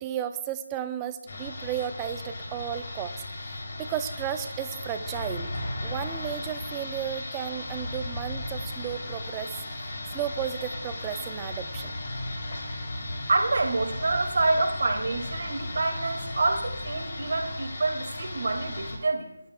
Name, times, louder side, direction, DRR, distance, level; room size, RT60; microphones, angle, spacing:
voice 1, 0.0-3.2 3.8-5.5 5.8-11.9, right 10 dB, 15° right, 9 dB, 0.6 m, -34 dB
sound 1, 1.3-19.0, left 1 dB, 45° left, 2.9 m, -36 dB
voice 2, 13.3-19.3, right 3 dB, 55° right, 4 dB, 2.0 m, -27 dB
21.0 x 12.5 x 2.2 m, 0.82 s
figure-of-eight pair, 160°, 0 cm